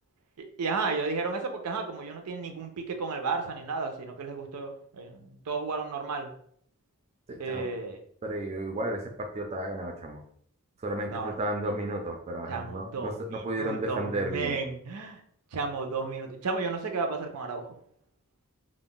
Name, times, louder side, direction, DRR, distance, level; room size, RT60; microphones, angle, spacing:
voice 1, 0.6-6.3 7.4-8.0 11.1-11.3 12.5-15.2 15.5-17.7, right 4 dB, 90° right, 5 dB, 0.5 m, -33 dB
voice 2, 7.3-7.7 8.2-10.2 10.8-14.6, right 1 dB, 30° right, 3 dB, 0.3 m, -33 dB
2.3 x 2.0 x 3.6 m, 0.64 s
head